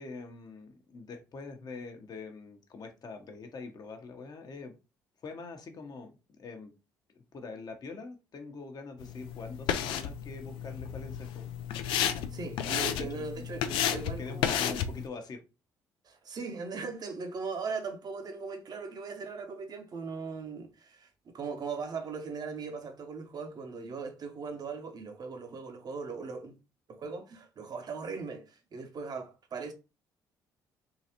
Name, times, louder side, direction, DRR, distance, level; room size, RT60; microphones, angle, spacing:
voice 1, 0.0-4.7 5.2-6.1 6.4-6.7 7.3-11.4 13.0-13.1 13.4-13.5 14.2-15.4, left 3 dB, 50° left, 0.9 m, -44 dB
sound 1, 9.0-15.1, left 9 dB, 75° left, 0.4 m, -32 dB
voice 2, 12.3-14.8 16.0-26.6 26.9-29.7, right 4 dB, 50° right, 0.9 m, -39 dB
3.8 x 2.4 x 2.9 m
hypercardioid pair, 55°, 9 cm